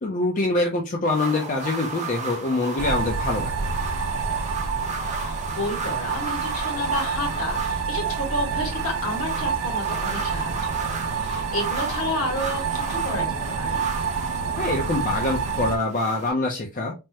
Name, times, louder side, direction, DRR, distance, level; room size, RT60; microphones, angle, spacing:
voice 1, 0.0-3.6 14.6-16.9, left 2 dB, 35° left, 1 dB, 0.4 m, -25 dB
sound 1, 1.1-16.3, right 3 dB, 30° right, 0.5 m, -34 dB
sound 2, 2.8-15.8, right 5 dB, 80° right, 0.4 m, -28 dB
voice 2, 5.1-13.8, left 1 dB, 65° left, 1 dB, 1.4 m, -31 dB
3.3 x 2.0 x 2.7 m, 0.26 s
head